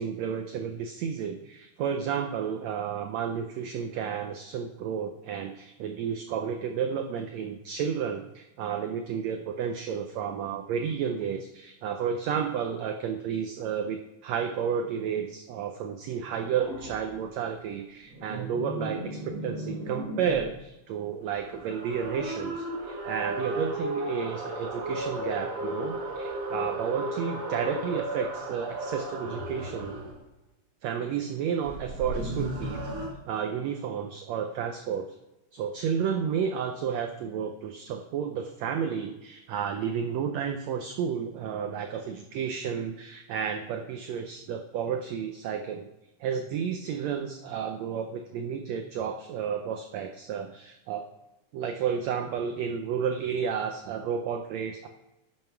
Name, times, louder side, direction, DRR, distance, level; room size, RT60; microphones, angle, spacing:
voice 1, 0.0-29.9 30.8-32.8 33.3-35.2 35.5-45.9 46.2-51.0 51.5-54.9, right 7 dB, 85° right, 6 dB, 1.5 m, -32 dB
sound 1, 16.6-17.0 18.1-20.5 21.2-30.2 31.6-33.1, right 1 dB, 55° right, 2.6 m, -35 dB
11.0 x 7.6 x 4.6 m, 0.99 s
omnidirectional pair, 3.9 m